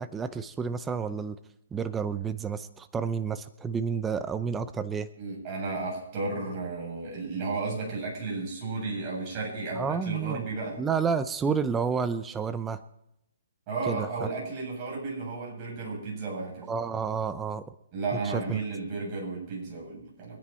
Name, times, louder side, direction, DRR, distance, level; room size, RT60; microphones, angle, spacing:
voice 1, 0.0-1.4 1.7-5.1 9.7-10.5 10.8-12.8 13.9-14.1 16.7-17.7 18.2-18.6, right 6 dB, 10° right, 11 dB, 0.6 m, -30 dB
voice 2, 5.2-10.8 13.7-16.7 17.9-20.4, right 3 dB, 30° right, -3 dB, 7.9 m, -33 dB
24.5 x 9.8 x 4.4 m, 0.82 s
hypercardioid pair, 150°, 0 cm